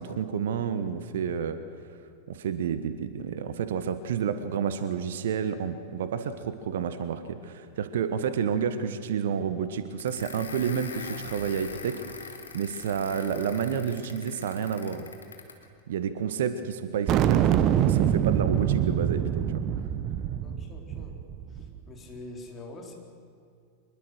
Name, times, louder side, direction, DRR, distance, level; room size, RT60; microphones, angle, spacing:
voice 1, 0.0-1.6 2.3-12.3 12.5-15.1 15.9-19.5, right 7 dB, 60° right, 11 dB, 1.3 m, -30 dB
sound 1, 10.0-15.6, left 4 dB, 70° left, 2.2 m, -42 dB
sound 2, 17.1-21.8, right 10 dB, 35° right, 1.1 m, -25 dB
voice 2, 20.4-21.1 21.9-22.9, left 2 dB, 25° left, 1 dB, 4.3 m, -44 dB
25.0 x 21.5 x 6.5 m, 2.3 s
figure-of-eight pair, 90°, 0 cm